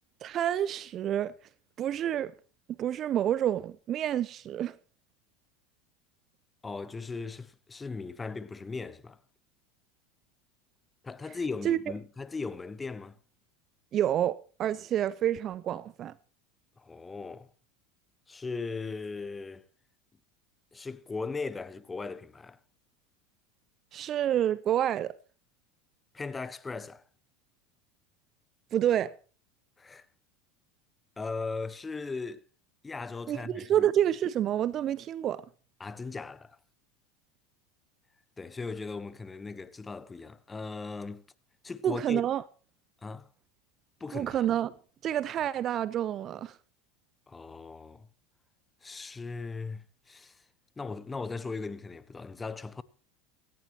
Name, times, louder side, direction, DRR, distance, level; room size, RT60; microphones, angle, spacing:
voice 1, 0.2-1.3 1.8-2.3 2.8-4.8 11.6-11.8 13.9-16.1 23.9-25.2 28.7-29.1 33.3-35.4 41.8-42.4 44.1-44.7 45.0-46.6, right 11 dB, 40° right, 0.6 m, -28 dB
voice 2, 6.6-9.2 11.0-13.2 16.8-17.5 18.3-19.6 20.7-22.6 26.1-27.0 29.8-30.1 31.2-32.4 32.8-33.9 35.8-36.6 38.4-41.2 41.6-42.2 43.0-43.3 44.0-44.5 47.3-48.1 48.8-50.4 50.8-52.8, left 4 dB, 20° left, 1.2 m, -38 dB
17.0 x 16.0 x 3.0 m
hypercardioid pair, 90°, 0 cm